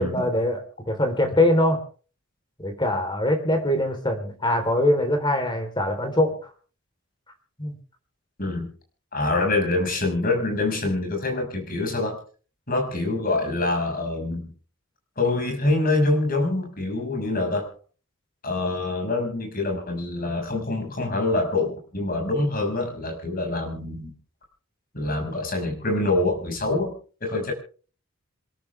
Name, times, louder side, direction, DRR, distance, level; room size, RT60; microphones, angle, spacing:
voice 1, 0.0-1.8 2.6-6.5 7.6-7.8, left 1 dB, 20° left, 5 dB, 3.8 m, -23 dB
voice 2, 8.4-8.7 9.1-12.2 12.7-14.5 15.2-17.7 18.4-24.1 24.9-26.9 27.2-27.5, left 2 dB, 45° left, 3 dB, 6.0 m, -25 dB
26.5 x 13.5 x 3.5 m, 0.41 s
head